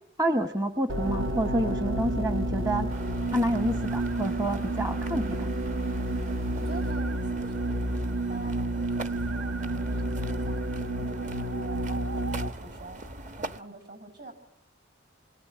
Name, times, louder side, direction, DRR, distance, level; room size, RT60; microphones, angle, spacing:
voice 1, 0.2-2.9 3.3-5.5, right 1 dB, 20° right, 7 dB, 1.1 m, -28 dB
sound 1, 0.9-6.9, equal, 90° right, 1.9 m, -37 dB
sound 2, 1.0-12.5, right 1 dB, 70° right, 1.2 m, -30 dB
sound 3, 2.9-13.6, right 1 dB, 40° right, 1.1 m, -42 dB
voice 2, 6.6-7.8 8.3-10.6 11.0-13.0 13.4-14.3, right 2 dB, 55° right, 7 dB, 7.4 m, -45 dB
27.5 x 23.0 x 9.4 m, 0.76 s
head